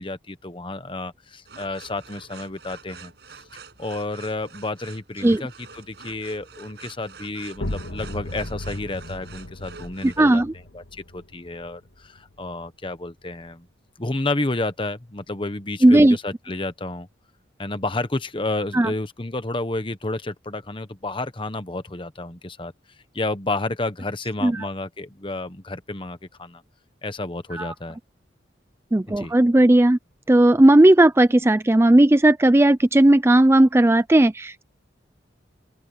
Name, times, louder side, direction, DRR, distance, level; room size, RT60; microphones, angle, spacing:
voice 1, 0.0-3.1 3.8-10.4 10.7-13.7 14.0-17.1 17.6-22.7 23.1-26.6 27.0-28.0 29.2-29.3, left 2 dB, 25° left, 1.1 m, -30 dB
sound 1, 1.4-10.2, right 5 dB, 60° right, 6.5 m, -46 dB
sound 2, 7.5-13.1, left 1 dB, 85° left, 1.9 m, -36 dB
voice 2, 10.0-10.5 15.8-16.2 18.7-18.9 24.4-24.7 27.5-27.7 28.9-30.0 30.3-34.6, right 1 dB, 15° right, 0.4 m, -16 dB
open air
head